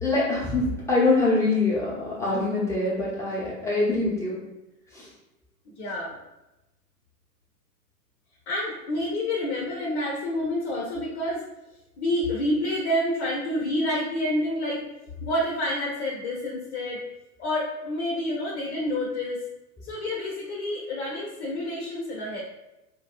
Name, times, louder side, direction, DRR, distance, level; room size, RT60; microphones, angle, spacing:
voice 1, 0.0-4.4 4.9-5.1, left 2 dB, 5° left, -8 dB, 1.0 m, -24 dB
voice 2, 5.8-6.1 8.5-11.4 12.0-14.8 15.2-17.0 17.4-19.4 19.8-22.4, left 1 dB, 45° left, -3 dB, 0.8 m, -28 dB
4.5 x 2.6 x 2.3 m, 0.95 s
figure-of-eight pair, 95°, 47 cm